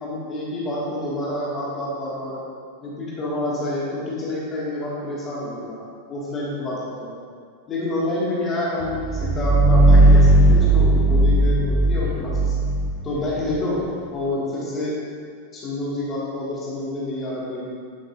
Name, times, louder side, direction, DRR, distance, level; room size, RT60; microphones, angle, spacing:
voice 1, 0.0-2.4 2.8-5.8 6.1-7.2 7.7-12.5 13.0-13.8 14.1-14.9 15.5-17.7, left 1 dB, 25° left, -7 dB, 2.0 m, -28 dB
sound 1, 8.9-13.6, right 1 dB, 5° left, 0.5 m, -16 dB
9.5 x 7.5 x 2.6 m, 2.1 s
figure-of-eight pair, 90°, 0 cm